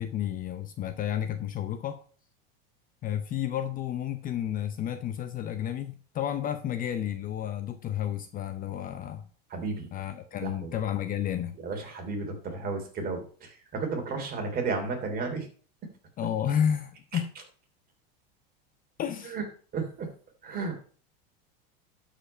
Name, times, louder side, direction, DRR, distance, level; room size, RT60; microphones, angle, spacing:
voice 1, 0.0-2.0 3.0-9.2 9.9-11.6 16.2-17.3 19.0-19.4, left 9 dB, 30° left, 0.7 m, -31 dB
voice 2, 9.5-9.9 10.4-10.7 11.6-13.2 13.7-15.5 19.3-19.4 19.7-20.1 20.4-20.8, right 4 dB, 30° right, 3.0 m, -32 dB
12.0 x 5.2 x 5.4 m
supercardioid pair, 135°, 29 cm